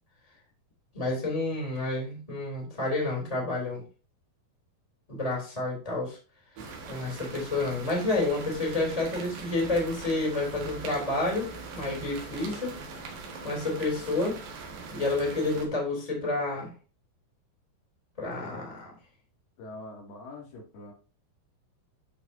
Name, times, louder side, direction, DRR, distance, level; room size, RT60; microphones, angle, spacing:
voice 1, 0.9-3.8 5.1-6.2 6.9-11.5 11.7-12.7 13.4-14.3 14.9-16.7 18.2-18.9, left 2 dB, 10° left, -1 dB, 2.9 m, -29 dB
sound 1, 6.6-15.7, right 4 dB, 70° right, 3.4 m, -41 dB
voice 2, 19.6-20.9, left 2 dB, 80° left, -1 dB, 4.4 m, -43 dB
12.0 x 5.3 x 2.7 m, 0.34 s
omnidirectional pair, 4.4 m